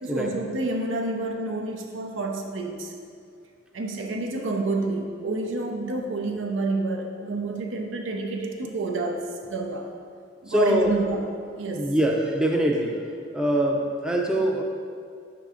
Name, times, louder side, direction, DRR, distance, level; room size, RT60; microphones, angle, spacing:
voice 1, 0.0-2.9 3.7-9.9 10.4-11.2 11.6-11.9, right 2 dB, 85° right, 2 dB, 0.7 m, -29 dB
voice 2, 10.5-10.9 11.7-12.9 13.3-14.6, equal, 5° right, 0 dB, 0.5 m, -23 dB
5.8 x 3.8 x 4.9 m, 2.2 s
head